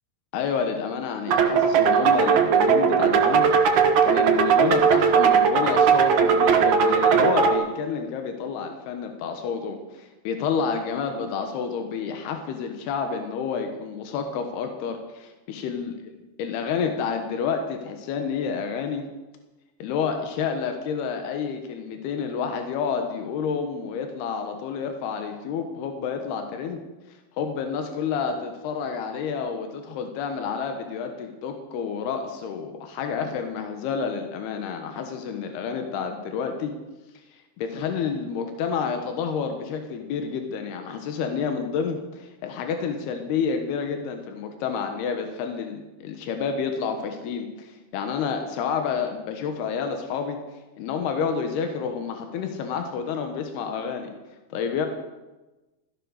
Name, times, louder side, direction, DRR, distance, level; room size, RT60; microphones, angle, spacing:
voice 1, 0.3-15.9 16.4-19.1 19.8-26.8 27.4-36.7 37.3-50.4 50.8-54.1 54.5-54.9, left 6 dB, 85° left, 5 dB, 3.3 m, -29 dB
sound 1, 1.3-7.5, right 6 dB, 60° right, 2.4 m, -18 dB
15.0 x 13.5 x 6.5 m, 1.1 s
omnidirectional pair, 4.5 m